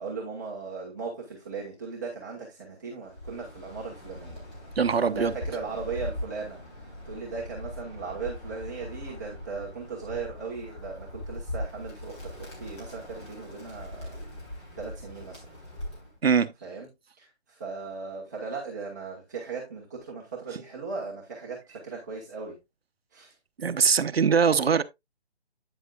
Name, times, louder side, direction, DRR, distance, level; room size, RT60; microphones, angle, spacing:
voice 1, 0.0-4.4 5.0-14.2 14.8-15.5 16.6-16.9 17.2-22.6 23.1-23.4, right 4 dB, 15° right, 1.1 m, -37 dB
Bird, 3.0-16.2, left 1 dB, 25° left, 3.4 m, -40 dB
voice 2, 4.8-5.3 16.2-16.5 23.6-24.8, right 6 dB, 65° right, 0.8 m, -22 dB
9.2 x 7.9 x 2.3 m
hypercardioid pair, 170°, 33 cm